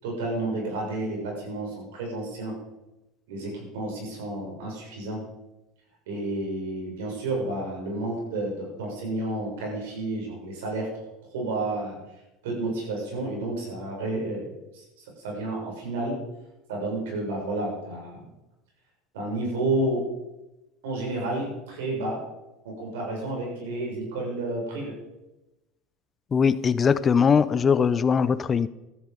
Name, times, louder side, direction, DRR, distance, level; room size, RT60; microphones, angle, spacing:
voice 1, 0.0-2.5 3.3-5.2 6.1-10.9 11.2-12.0 12.4-16.2 16.7-18.2 19.1-20.1 20.8-22.2 22.6-24.9, right 2 dB, 85° right, -1 dB, 7.0 m, -31 dB
voice 2, 26.3-28.7, left 6 dB, 30° left, 15 dB, 0.7 m, -21 dB
15.0 x 13.0 x 5.4 m, 0.98 s
supercardioid pair, 95°, 0 cm